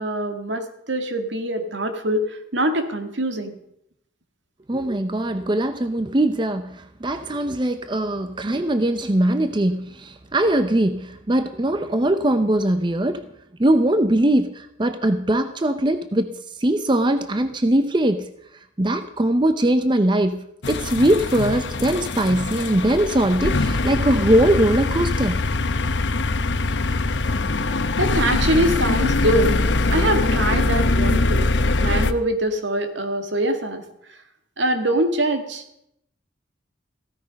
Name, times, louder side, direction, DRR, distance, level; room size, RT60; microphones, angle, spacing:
voice 1, 0.0-3.5 27.7-29.6 29.9-31.5 31.8-33.8 34.6-35.6, right 1 dB, 75° right, 6 dB, 2.0 m, -23 dB
voice 2, 4.7-13.2 13.6-18.3 18.8-25.4, right 1 dB, 25° right, 9 dB, 0.6 m, -21 dB
sound 1, 20.6-32.1, left 2 dB, 75° left, 0.9 m, -22 dB
15.5 x 13.5 x 5.2 m, 0.77 s
head